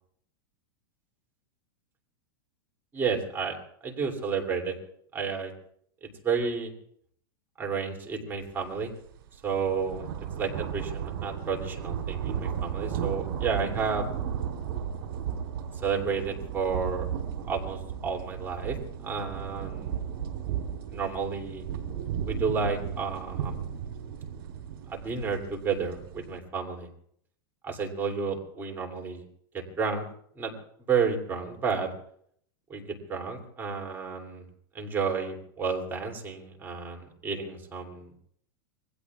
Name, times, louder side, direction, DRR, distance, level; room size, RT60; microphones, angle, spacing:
voice 1, 2.9-3.6 3.8-4.7 5.1-5.5 6.0-6.7 7.6-8.9 9.4-10.1 10.4-14.1 15.8-17.1 17.5-18.8 19.0-20.0 20.9-21.6 22.3-23.6 24.9-26.9 27.6-29.2 29.5-30.0 30.4-30.5 30.9-31.9 32.7-34.4 34.7-38.1, right 5 dB, 15° right, 1 dB, 2.9 m, -31 dB
sound 1, 8.6-8.8 9.1-26.4, right 8 dB, 70° right, 3.3 m, -35 dB
27.0 x 21.5 x 2.4 m, 0.67 s
supercardioid pair, 150°, 13 cm